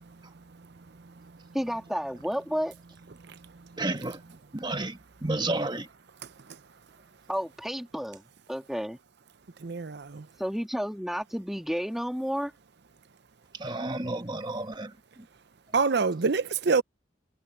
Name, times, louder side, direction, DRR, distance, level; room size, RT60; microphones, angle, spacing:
voice 1, 1.5-2.7 7.3-8.2 8.5-9.0 10.4-12.5, equal, ahead, 2.6 m, -31 dB
voice 2, 3.8-4.2 4.5-5.9 13.6-14.9, right 2 dB, 25° right, 1.4 m, -31 dB
voice 3, 9.6-10.3 15.7-16.8, right 4 dB, 60° right, 0.7 m, -26 dB
head